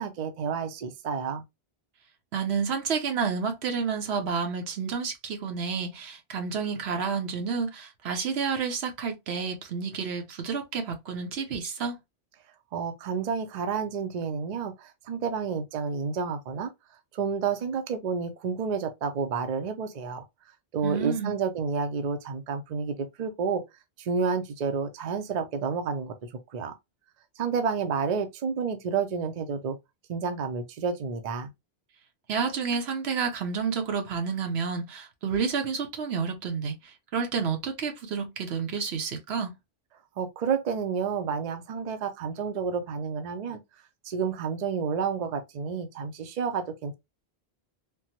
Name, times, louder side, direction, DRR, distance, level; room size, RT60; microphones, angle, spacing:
voice 1, 0.0-1.4 12.7-16.7 17.1-20.2 20.7-23.6 24.0-26.7 27.4-29.8 30.1-31.5 40.2-43.6 44.0-46.9, right 6 dB, 50° right, 0.6 m, -30 dB
voice 2, 2.3-12.0 20.8-21.4 32.3-39.5, right 5 dB, 80° right, 1.0 m, -30 dB
3.5 x 2.0 x 2.8 m
omnidirectional pair, 1.1 m